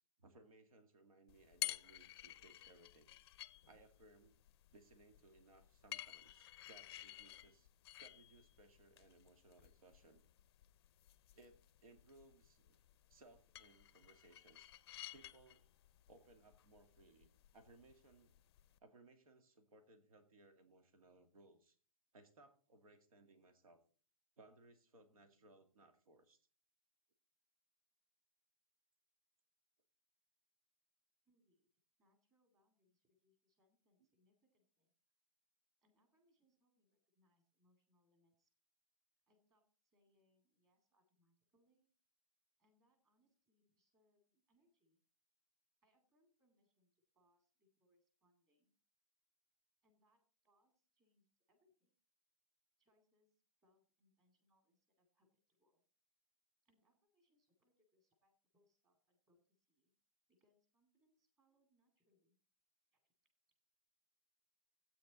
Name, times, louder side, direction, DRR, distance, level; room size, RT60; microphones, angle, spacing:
voice 1, 0.2-3.1 3.7-4.3 4.7-7.7 8.0-10.2 11.4-12.8 13.1-14.7 15.1-15.7 16.1-18.3 18.8-21.8 22.1-23.8 24.4-26.5, right 2 dB, 75° right, 7 dB, 2.3 m, -65 dB
sound 1, 1.3-18.8, left 14 dB, 45° left, 0.5 m, -53 dB
voice 2, 31.2-31.7 32.0-34.9 35.8-38.5 39.3-41.9 42.6-45.0 45.8-48.7 49.8-51.9 52.8-55.8 56.6-60.0 60.3-62.4 62.9-63.1, left 1 dB, 20° right, 4 dB, 2.3 m, -81 dB
14.0 x 8.5 x 4.0 m, 0.41 s
hypercardioid pair, 155°, 18 cm